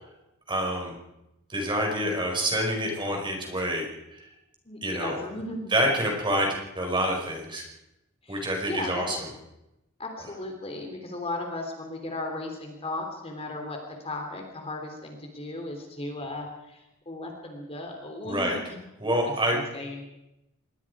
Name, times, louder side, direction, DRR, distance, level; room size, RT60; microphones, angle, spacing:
voice 1, 0.5-0.9 1.5-3.9 4.1-4.2 4.8-5.2 5.7-7.6 8.3-9.2 18.3-18.5 19.0-19.6, right 1 dB, 25° right, 1 dB, 5.3 m, -27 dB
voice 2, 4.6-5.7 8.2-9.1 10.0-18.8 19.2-20.1, left 2 dB, 30° left, 3 dB, 3.2 m, -36 dB
26.0 x 21.5 x 4.9 m, 0.90 s
head